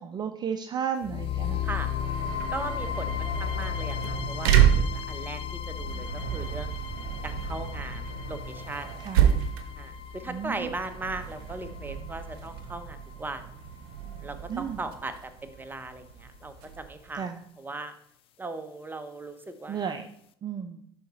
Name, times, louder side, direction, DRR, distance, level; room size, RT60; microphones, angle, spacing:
voice 1, 0.0-1.7 9.0-9.4 10.3-10.7 14.5-14.8 17.1-17.4 19.7-20.1 20.4-20.8, right 7 dB, 35° right, 7 dB, 0.6 m, -33 dB
sound 1, 1.0-15.0, left 9 dB, 45° left, 0.5 m, -36 dB
sound 2, 1.8-17.1, right 9 dB, 70° right, 0.8 m, -30 dB
voice 2, 2.5-6.7 7.2-8.9 9.8-13.4 14.2-17.3 17.6-17.9 18.4-19.9, right 2 dB, 15° right, 9 dB, 0.9 m, -38 dB
11.0 x 4.2 x 4.1 m, 0.68 s
hypercardioid pair, 65°, 13 cm